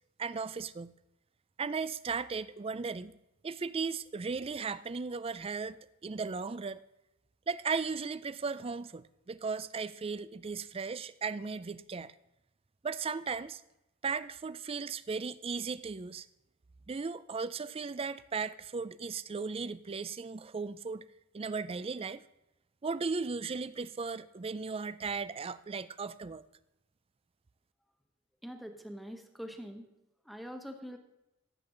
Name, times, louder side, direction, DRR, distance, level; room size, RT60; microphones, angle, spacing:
voice 1, 0.2-0.9 1.6-3.1 3.4-6.8 7.5-12.1 12.8-13.6 14.0-16.3 16.9-21.0 21.3-22.2 22.8-26.5, right 5 dB, 30° right, 0.4 m, -36 dB
voice 2, 28.4-29.9 30.2-31.0, equal, ahead, 1.2 m, -44 dB
15.5 x 8.7 x 3.9 m
head